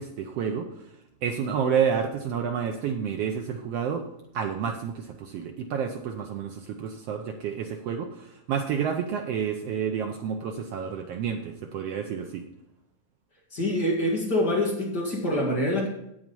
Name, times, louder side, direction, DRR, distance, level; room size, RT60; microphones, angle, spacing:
voice 1, 0.0-4.1 4.3-12.4, right 7 dB, 80° right, 4 dB, 1.4 m, -30 dB
voice 2, 13.5-15.9, left 1 dB, 40° left, -2 dB, 1.9 m, -25 dB
8.5 x 7.8 x 5.3 m, 0.82 s
omnidirectional pair, 3.6 m